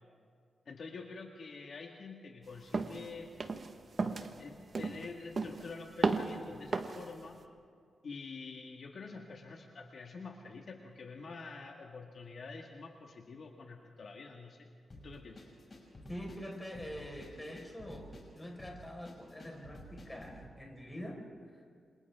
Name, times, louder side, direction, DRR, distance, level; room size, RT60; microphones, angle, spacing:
voice 1, 0.7-3.3 4.4-7.4 8.0-14.7 15.0-15.4, left 4 dB, 55° left, 1 dB, 1.7 m, -47 dB
sound 1, 2.7-3.0 3.4-3.7 4.0-4.3 4.7-5.1 5.4-5.7 6.0-6.4 6.7-7.0, right 4 dB, 45° right, 1.3 m, -33 dB
sound 2, 14.9-20.4, equal, 35° left, 5.9 m, -51 dB
voice 2, 16.1-21.6, equal, 10° left, 1 dB, 4.5 m, -45 dB
28.0 x 27.0 x 3.6 m, 2.3 s
wide cardioid pair, 125°, 0 cm